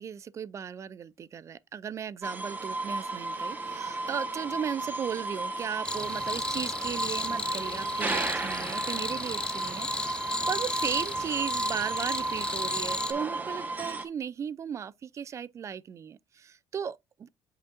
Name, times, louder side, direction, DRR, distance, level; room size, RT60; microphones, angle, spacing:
voice 1, 0.0-17.3, right 7 dB, 40° right, 0.4 m, -36 dB
sound 1, 2.2-14.0, right 2 dB, 20° right, 1.3 m, -34 dB
sound 2, 5.8-13.1, left 2 dB, 10° left, 0.6 m, -34 dB
8.3 x 4.9 x 2.5 m
cardioid pair, 115°, 8 cm